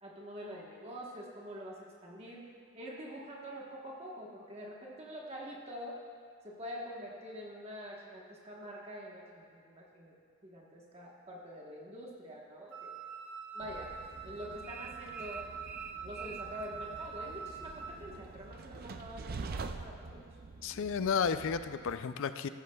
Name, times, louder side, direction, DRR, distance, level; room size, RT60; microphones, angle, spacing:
voice 1, 0.0-6.0 6.4-10.1 10.4-12.9 13.5-14.0 14.2-15.5 16.0-20.2, equal, 30° right, -3 dB, 1.2 m, -46 dB
Wind instrument woodwind instrument, 12.7-18.1, right 6 dB, 60° right, 1.1 m, -45 dB
Train, 13.6-21.9, right 4 dB, 45° right, 0.5 m, -46 dB
voice 2, 20.6-22.5, left 6 dB, 60° left, 11 dB, 0.4 m, -32 dB
14.5 x 13.5 x 2.3 m, 2.3 s
head